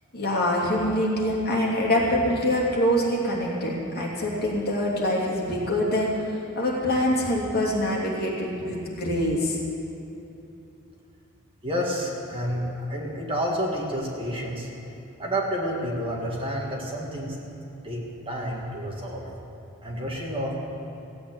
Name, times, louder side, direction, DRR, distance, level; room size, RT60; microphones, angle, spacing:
voice 1, 0.1-6.1 6.6-9.6, left 1 dB, 45° left, -4 dB, 2.9 m, -24 dB
voice 2, 11.6-14.7 15.2-17.4 17.8-19.3 19.8-20.5, equal, 25° right, -2 dB, 1.9 m, -29 dB
15.5 x 8.5 x 8.9 m, 2.9 s
head